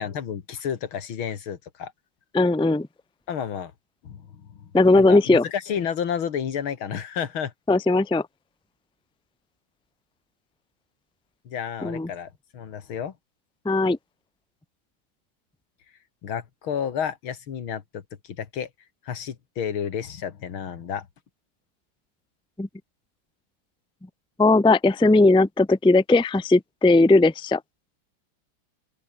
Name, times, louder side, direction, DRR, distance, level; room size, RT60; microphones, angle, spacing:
voice 1, 0.0-1.9 3.3-3.7 4.0-4.7 4.9-7.5 11.5-13.1 16.2-18.7 19.0-21.1, left 8 dB, 90° left, 2.6 m, -31 dB
voice 2, 2.3-2.9 4.7-5.4 7.7-8.2 11.8-12.1 13.6-14.0 22.6-22.7 24.4-27.6, left 2 dB, 5° left, 0.5 m, -18 dB
open air
omnidirectional pair, 2.2 m